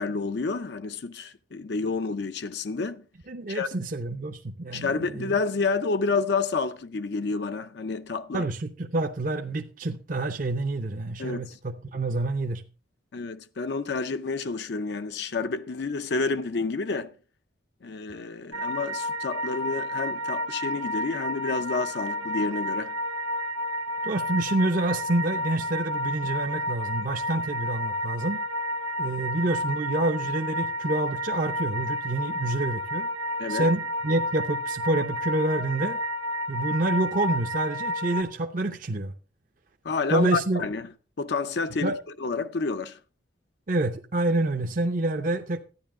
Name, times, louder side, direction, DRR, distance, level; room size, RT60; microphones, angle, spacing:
voice 1, 0.0-3.0 3.5-3.7 4.7-8.5 11.2-11.6 13.1-17.1 17.8-23.0 33.4-33.7 39.8-40.9 41.2-43.0, left 4 dB, 60° left, 0.5 m, -29 dB
voice 2, 3.3-5.3 8.3-12.6 24.0-28.4 29.0-33.1 33.5-36.0 36.5-39.1 40.1-40.7 41.8-42.0 43.7-45.6, right 2 dB, 45° right, 0.6 m, -27 dB
sound 1, 18.5-38.2, equal, 80° right, 1.1 m, -31 dB
12.5 x 9.8 x 3.6 m
head